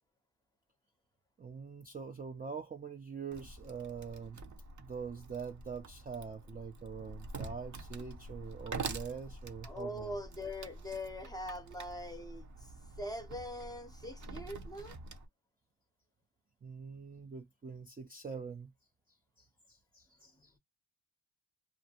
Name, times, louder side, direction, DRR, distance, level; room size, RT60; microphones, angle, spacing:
voice 1, 1.4-4.4 4.8-10.1 16.6-18.7 19.4-20.5, right 6 dB, 20° right, 0.4 m, -44 dB
Wood, 3.3-15.3, right 3 dB, 45° right, 0.8 m, -46 dB
voice 2, 9.6-15.0, left 1 dB, 10° left, 0.7 m, -42 dB
2.5 x 2.1 x 2.8 m
cardioid pair, 75°, 41 cm